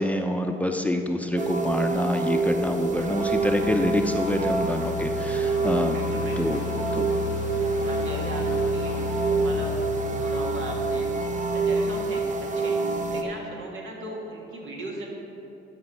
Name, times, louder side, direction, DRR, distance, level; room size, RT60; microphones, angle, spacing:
voice 1, 0.0-6.0 6.4-6.6 6.9-7.1, left 1 dB, 5° left, 4 dB, 0.6 m, -26 dB
sound 1, 1.4-13.2, right 4 dB, 40° right, 0.8 m, -27 dB
sound 2, 2.4-12.5, left 13 dB, 70° left, 0.5 m, -35 dB
voice 2, 5.9-6.7 7.8-9.7 10.0-11.2 11.5-12.2 12.6-12.8 13.1-15.1, right 2 dB, 75° right, -1 dB, 1.9 m, -38 dB
12.5 x 5.3 x 5.4 m, 2.8 s
cardioid pair, 90°, 20 cm